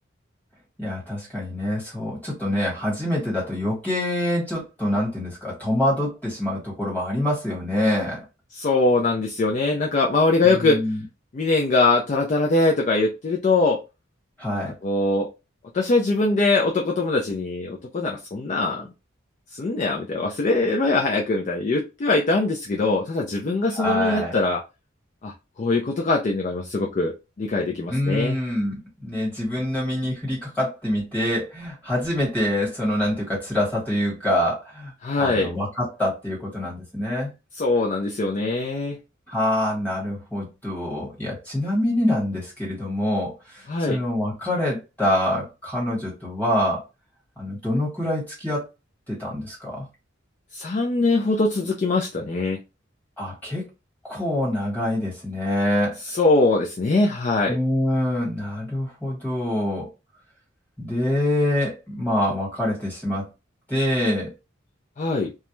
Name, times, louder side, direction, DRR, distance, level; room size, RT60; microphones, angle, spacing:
voice 1, 0.8-8.2 10.4-11.0 14.4-14.7 23.7-24.4 27.9-37.3 39.3-46.8 47.4-48.7 49.1-49.9 53.2-53.6 54.0-56.0 57.5-59.9 60.8-63.3 63.7-64.3, left 1 dB, 10° left, 1.3 m, -25 dB
voice 2, 8.5-10.8 11.3-13.8 14.5-15.3 15.7-18.9 19.5-24.6 25.2-25.3 25.6-28.4 35.0-35.5 37.6-39.0 43.7-44.0 50.5-52.6 56.0-57.6 65.0-65.3, left 3 dB, 35° left, 0.3 m, -22 dB
2.3 x 2.1 x 2.9 m
head